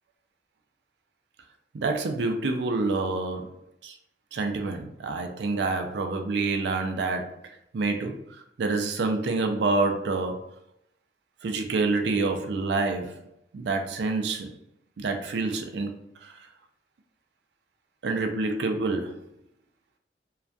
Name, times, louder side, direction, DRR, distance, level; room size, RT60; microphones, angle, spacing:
voice 1, 1.7-3.6 3.8-4.0 4.3-7.3 7.7-10.5 11.4-13.2 13.5-14.5 15.0-16.4 18.0-19.2, right 3 dB, 75° right, 5 dB, 0.4 m, -27 dB
2.3 x 2.1 x 2.5 m, 0.76 s
head